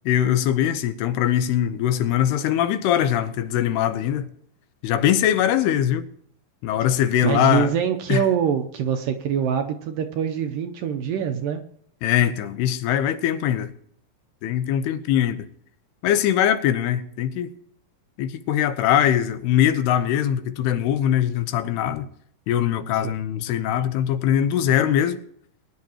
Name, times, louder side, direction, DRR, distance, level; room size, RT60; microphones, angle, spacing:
voice 1, 0.1-4.3 4.8-6.1 6.6-7.7 8.1-8.2 12.0-13.7 14.4-15.5 16.0-17.5 18.2-22.1 22.5-25.2, left 10 dB, 90° left, 2.9 m, -22 dB
voice 2, 7.2-11.6 23.0-23.1, right 8 dB, 75° right, 2.1 m, -24 dB
21.5 x 10.5 x 3.0 m
omnidirectional pair, 4.6 m